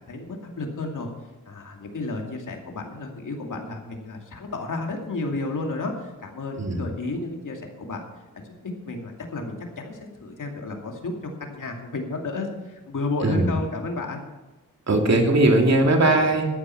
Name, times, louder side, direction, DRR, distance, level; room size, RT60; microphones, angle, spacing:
voice 1, 0.1-1.1 1.5-8.0 8.3-11.1 11.4-14.2, left 3 dB, 70° left, 2 dB, 2.5 m, -32 dB
voice 2, 14.9-16.5, right 2 dB, 55° right, 2 dB, 2.6 m, -19 dB
13.5 x 9.6 x 6.0 m, 1.1 s
cardioid pair, 70°, 33 cm